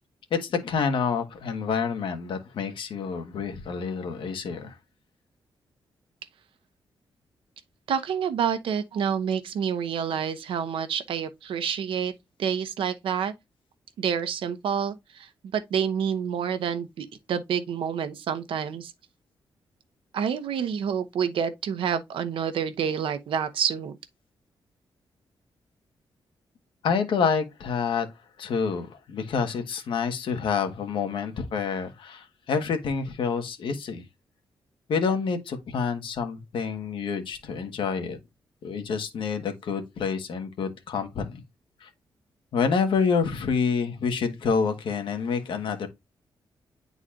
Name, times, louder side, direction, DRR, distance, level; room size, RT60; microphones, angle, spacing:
voice 1, 0.3-4.7 26.8-28.1 28.4-34.0 34.9-38.2 38.6-41.4 41.8-41.9 42.5-45.9, left 5 dB, 75° left, 1.4 m, -28 dB
voice 2, 7.9-12.1 12.4-13.3 14.0-18.9 20.1-24.0, right 7 dB, 80° right, 0.9 m, -28 dB
9.9 x 4.1 x 2.5 m
wide cardioid pair, 170°, 9 cm